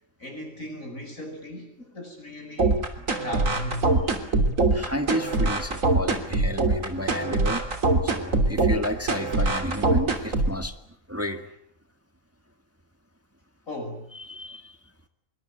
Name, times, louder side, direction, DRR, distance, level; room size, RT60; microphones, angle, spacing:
voice 1, 0.2-3.9 13.7-14.1, left 1 dB, 80° left, 4 dB, 7.9 m, -37 dB
sound 1, 2.6-10.6, right 3 dB, 75° right, 3.5 m, -23 dB
voice 2, 4.7-7.6 8.0-10.8 11.1-11.5 14.1-14.8, equal, 10° right, 8 dB, 1.7 m, -31 dB
26.5 x 23.5 x 8.9 m, 0.70 s
omnidirectional pair, 1.4 m